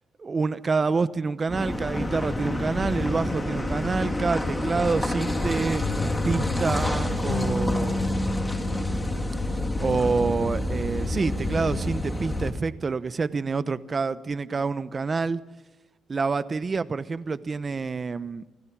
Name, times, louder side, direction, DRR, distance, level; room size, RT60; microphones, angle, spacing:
voice 1, 0.2-5.8 6.2-8.4 9.8-15.4 16.1-18.4, right 4 dB, 35° right, 1.0 m, -27 dB
Car passing by / Idling / Accelerating revving vroom, 1.5-12.5, left 1 dB, 10° left, 2.8 m, -28 dB
sound 1, 5.8-11.8, left 3 dB, 60° left, 6.6 m, -31 dB
28.0 x 15.0 x 6.2 m
cardioid pair, 90°, 0 cm